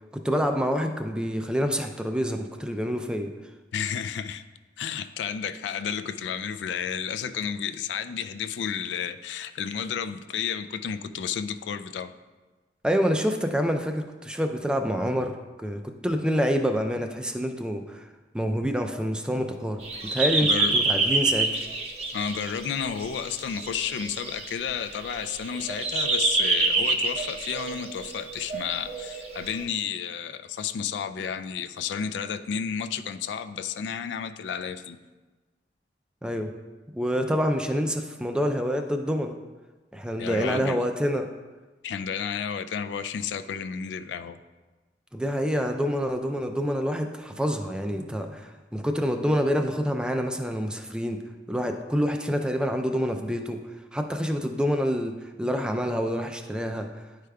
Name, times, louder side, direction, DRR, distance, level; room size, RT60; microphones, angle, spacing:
voice 1, 0.1-3.3 12.8-18.1 18.3-19.8 20.1-21.6 36.2-36.5 36.9-39.4 39.9-41.3 45.1-51.2 51.5-53.6 53.9-56.9, equal, 5° right, 5 dB, 0.3 m, -27 dB
voice 2, 3.7-4.4 4.8-12.1 20.4-20.8 22.1-35.0 40.2-40.9 41.8-44.4, left 7 dB, 80° left, 11 dB, 0.3 m, -32 dB
sound 1, 19.8-29.6, right 3 dB, 35° right, 0.7 m, -27 dB
10.0 x 4.8 x 2.3 m, 1.3 s
head